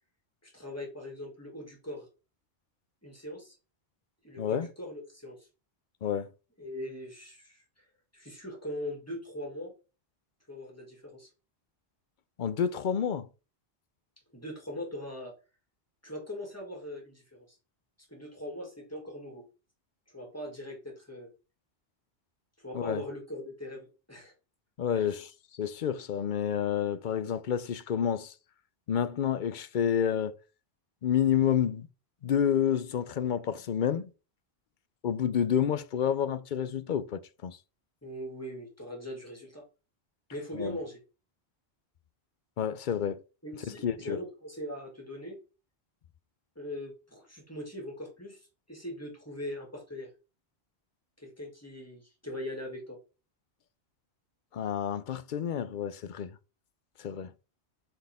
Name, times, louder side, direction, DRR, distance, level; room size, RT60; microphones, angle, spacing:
voice 1, 0.4-2.1 3.0-3.6 4.2-5.5 6.6-7.6 8.1-9.7 10.5-11.3 14.3-15.3 16.0-17.6 18.1-19.5 20.1-21.3 22.6-24.3 24.9-25.2 38.0-39.6 40.3-41.0 43.4-45.4 46.6-50.1 51.2-53.0, left 1 dB, 15° left, 2.4 m, -41 dB
voice 2, 4.4-4.7 6.0-6.3 12.4-13.3 22.7-23.0 24.8-28.3 28.9-30.3 31.0-31.9 32.2-34.1 35.0-37.6 40.5-40.8 42.6-43.2 43.8-44.2 54.5-56.4 57.0-57.3, left 8 dB, 55° left, 0.7 m, -29 dB
7.7 x 4.5 x 3.6 m
omnidirectional pair, 1.1 m